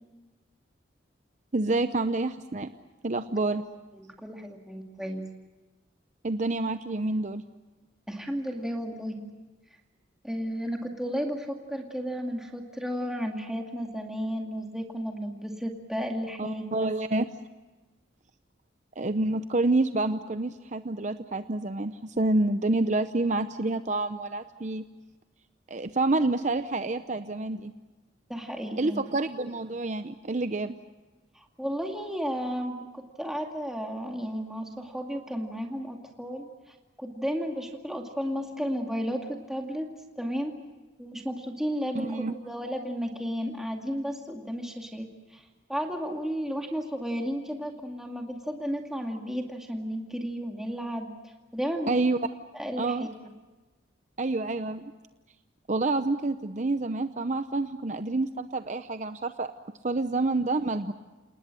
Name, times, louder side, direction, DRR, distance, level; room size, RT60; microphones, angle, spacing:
voice 1, 1.5-2.7 3.0-3.6 6.2-7.4 16.4-17.3 19.0-24.8 25.7-27.7 28.8-30.8 41.9-42.3 51.9-52.2 52.8-53.1 54.2-54.9 55.7-59.5 59.8-60.9, right 2 dB, 40° right, 10 dB, 0.7 m, -28 dB
voice 2, 3.9-5.3 8.1-9.3 10.2-16.7 28.3-29.0 31.4-36.5 37.0-39.9 40.2-40.5 41.0-45.4 45.7-51.1 51.5-52.0 52.5-53.1, equal, 5° right, 1 dB, 2.2 m, -33 dB
29.0 x 19.0 x 7.6 m, 1.2 s
head